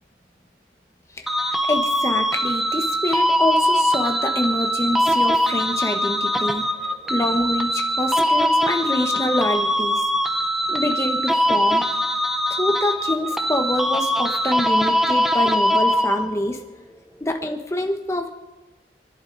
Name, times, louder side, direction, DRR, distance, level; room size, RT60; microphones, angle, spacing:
voice 1, 1.2-6.6 7.1-10.0 10.7-11.8 12.5-16.6 17.2-18.3, left 1 dB, 15° left, 4 dB, 1.2 m, -26 dB
sound 1, 1.3-16.5, equal, ahead, 0.6 m, -22 dB
28.0 x 11.0 x 4.0 m, 1.1 s
head